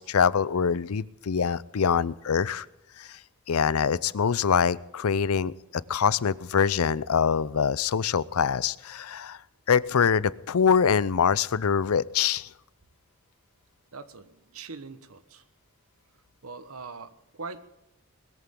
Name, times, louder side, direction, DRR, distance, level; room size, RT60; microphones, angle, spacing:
voice 1, 0.0-2.7 3.0-3.1 3.5-5.5 5.9-9.4 9.7-12.5, left 6 dB, 90° left, 20 dB, 0.5 m, -24 dB
voice 2, 13.9-15.4 16.4-17.6, right 4 dB, 80° right, 12 dB, 1.2 m, -42 dB
20.5 x 14.0 x 3.8 m, 0.87 s
head